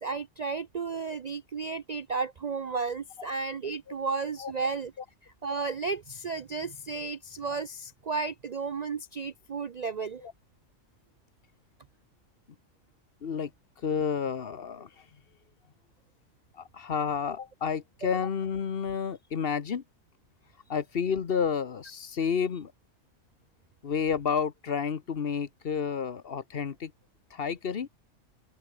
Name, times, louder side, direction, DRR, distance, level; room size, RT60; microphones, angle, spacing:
voice 1, 0.0-4.9 5.2-10.2, right 4 dB, 55° right, 0.4 m, -33 dB
voice 2, 13.8-14.9 16.7-19.8 20.7-22.7 23.8-26.9 27.3-27.9, left 6 dB, 50° left, 1.2 m, -30 dB
open air
omnidirectional pair, 1.4 m